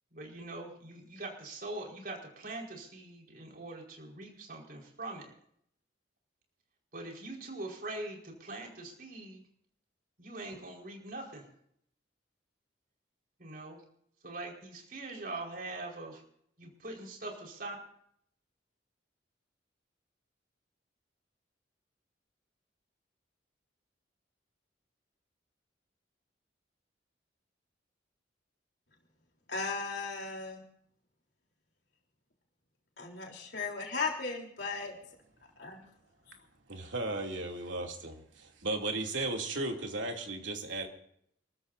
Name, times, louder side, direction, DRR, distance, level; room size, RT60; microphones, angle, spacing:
voice 1, 0.1-5.3 6.9-9.4 10.2-11.4 13.4-13.8 14.2-16.2 16.6-17.7, right 2 dB, 50° right, 0 dB, 4.9 m, -42 dB
voice 2, 29.5-30.6 33.0-34.9 35.6-35.7, left 4 dB, 60° left, 0 dB, 3.8 m, -36 dB
voice 3, 36.7-40.9, right 2 dB, 85° right, 1 dB, 3.0 m, -35 dB
29.0 x 14.5 x 2.7 m, 0.69 s
head